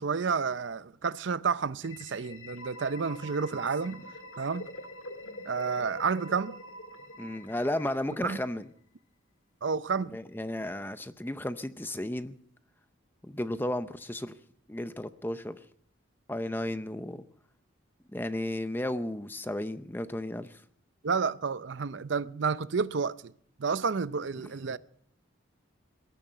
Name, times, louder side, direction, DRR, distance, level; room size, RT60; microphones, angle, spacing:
voice 1, 0.0-4.0 4.4-4.7 5.5-6.6 8.2-8.4 9.6-10.2 21.0-23.3 23.6-24.8, right 5 dB, 65° right, 0.6 m, -30 dB
sound 1, 1.8-8.6, left 1 dB, 90° left, 1.8 m, -45 dB
voice 2, 7.2-8.7 10.1-12.3 13.2-14.3 14.7-15.6 16.3-17.2 18.1-20.6, left 1 dB, 10° left, 0.6 m, -33 dB
20.0 x 13.0 x 5.6 m
head